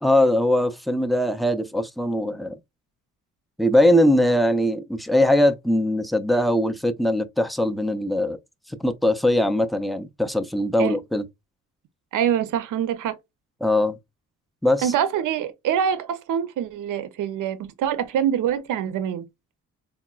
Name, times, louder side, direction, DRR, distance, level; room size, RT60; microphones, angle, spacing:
voice 1, 0.0-2.6 3.6-8.4 8.7-11.2 13.6-14.0 14.6-14.9, left 1 dB, ahead, 0.3 m, -21 dB
voice 2, 12.1-13.2 14.8-19.2, right 9 dB, 70° right, 0.5 m, -25 dB
3.8 x 2.0 x 2.3 m
cardioid pair, 90°, 33 cm